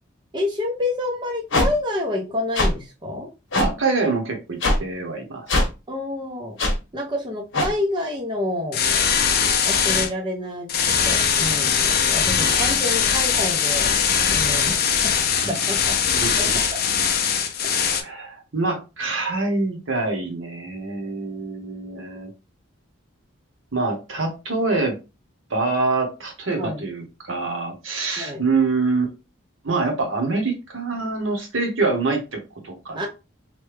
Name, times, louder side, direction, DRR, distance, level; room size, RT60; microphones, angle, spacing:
voice 1, 0.3-3.3 5.9-6.6 6.9-8.8 9.6-15.1 15.5-15.9 17.6-18.0 26.6-26.8 28.2-28.4 32.9-33.1, left 1 dB, 20° right, -1 dB, 0.6 m, -28 dB
sound 1, 1.5-1.7 2.5-2.7 3.5-3.7 4.6-4.8 5.5-5.7 6.6-6.7 7.5-7.7, left 2 dB, 70° left, 0.9 m, -19 dB
voice 2, 3.6-5.5 15.4-16.3 17.7-22.3 23.7-25.0 25.5-29.1 29.6-33.1, right 3 dB, 75° right, 3 dB, 1.0 m, -25 dB
sound 2, 8.7-10.1 10.7-18.0, left 7 dB, 50° left, 0.5 m, -21 dB
3.2 x 2.2 x 3.2 m, 0.28 s
head